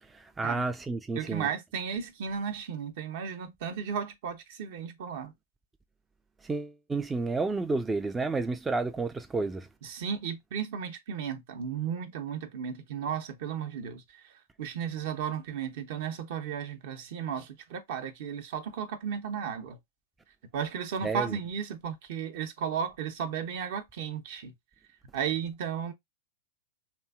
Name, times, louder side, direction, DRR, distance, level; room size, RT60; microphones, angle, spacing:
voice 1, 0.0-1.5 6.4-9.7 21.0-21.4, right 3 dB, 10° right, 0.3 m, -31 dB
voice 2, 1.2-5.3 9.8-14.0 14.6-19.8 20.5-24.5 25.1-25.9, right 7 dB, 60° right, 0.8 m, -34 dB
3.0 x 2.7 x 2.4 m
hypercardioid pair, 115°, 0 cm